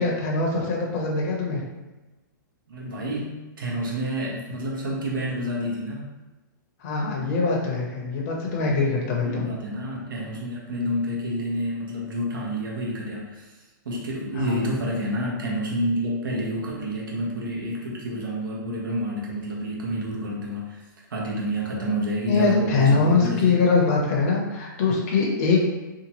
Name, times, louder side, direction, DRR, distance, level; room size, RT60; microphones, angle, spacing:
voice 1, 0.0-1.6 6.8-9.5 14.4-14.7 22.2-25.7, left 4 dB, 45° left, -2 dB, 0.6 m, -23 dB
voice 2, 2.7-6.1 9.1-13.6 13.8-23.5, equal, 85° right, -3 dB, 0.9 m, -29 dB
2.8 x 2.3 x 2.8 m, 1.1 s
hypercardioid pair, 155°, 11 cm